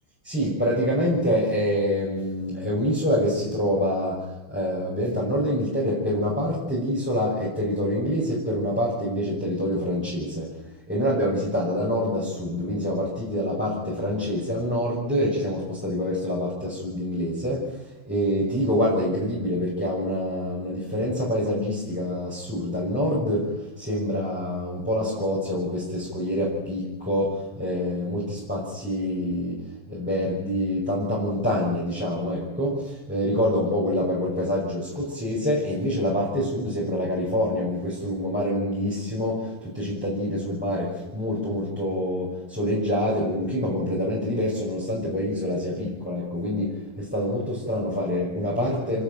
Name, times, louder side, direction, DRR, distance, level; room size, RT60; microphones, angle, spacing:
voice 1, 0.2-10.6 10.9-49.0, equal, 5° right, -5 dB, 5.8 m, -26 dB
29.0 x 11.5 x 9.0 m, 1.1 s
omnidirectional pair, 2.4 m